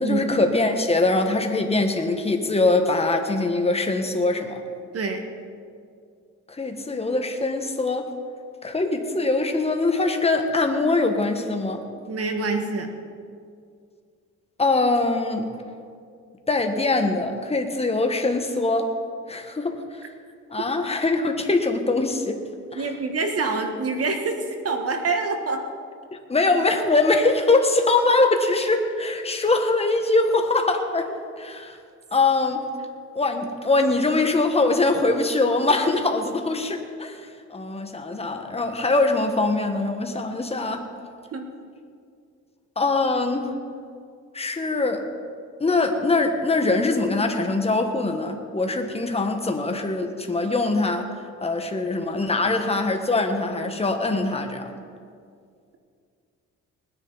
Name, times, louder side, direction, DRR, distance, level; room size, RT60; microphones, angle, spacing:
voice 1, 0.0-4.6 6.5-8.1 8.6-11.8 14.6-15.5 16.5-18.9 19.3-20.1 20.5-22.4 22.7-22.9 26.1-31.8 32.1-32.7 33.1-40.9 42.8-43.5 44.3-45.1 45.6-51.1 51.4-54.7, left 3 dB, 20° left, 5 dB, 1.5 m, -23 dB
voice 2, 4.9-5.3 12.1-12.9 22.7-24.4 24.6-25.6 41.3-41.5, right 3 dB, 50° right, 5 dB, 1.7 m, -26 dB
20.0 x 10.0 x 4.1 m, 2.2 s
cardioid pair, 90°, 30 cm